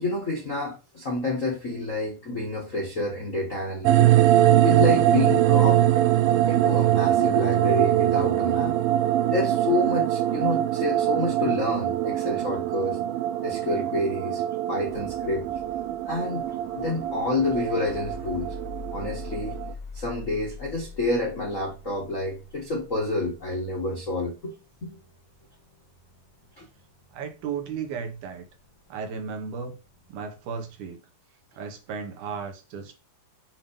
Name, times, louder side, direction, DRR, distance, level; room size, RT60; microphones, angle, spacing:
voice 1, 0.0-4.1 4.6-6.0 6.5-8.7 9.3-13.0 13.4-14.4 14.7-15.4 16.1-16.5 16.7-18.5 18.9-19.6 19.9-24.5 24.8-25.0, left 2 dB, 80° left, 0.7 m, -28 dB
sound 1, 3.8-19.7, right 13 dB, 90° right, 2.3 m, -23 dB
sound 2, 14.8-30.7, left 2 dB, 55° left, 1.8 m, -45 dB
voice 2, 27.1-28.5 28.9-29.8 30.1-31.0 31.5-33.0, right 6 dB, 70° right, 2.2 m, -34 dB
7.5 x 2.8 x 5.1 m
omnidirectional pair, 4.0 m